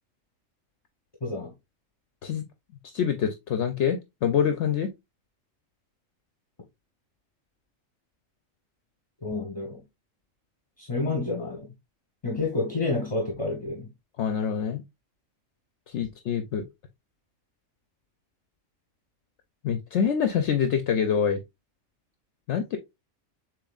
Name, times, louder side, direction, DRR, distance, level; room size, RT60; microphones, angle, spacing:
voice 1, 1.2-1.5 9.2-9.8 10.8-11.7 12.2-13.9, left 3 dB, 25° left, 1.1 m, -29 dB
voice 2, 2.9-4.9 14.2-14.8 15.9-16.6 19.6-21.4 22.5-22.8, left 7 dB, 65° left, 0.8 m, -25 dB
6.9 x 3.1 x 2.4 m
omnidirectional pair, 1.4 m